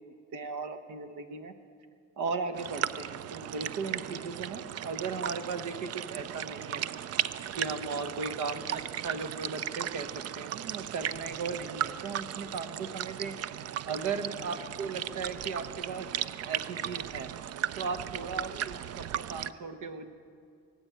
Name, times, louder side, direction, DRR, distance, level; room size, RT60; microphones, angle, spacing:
voice 1, 0.3-1.5 2.2-6.8 7.6-17.3 17.8-20.1, right 4 dB, 80° right, 8 dB, 1.1 m, -37 dB
sound 1, 2.5-19.5, right 11 dB, 55° right, 0.5 m, -36 dB
18.0 x 7.9 x 9.1 m, 2.3 s
cardioid pair, 90°, 30 cm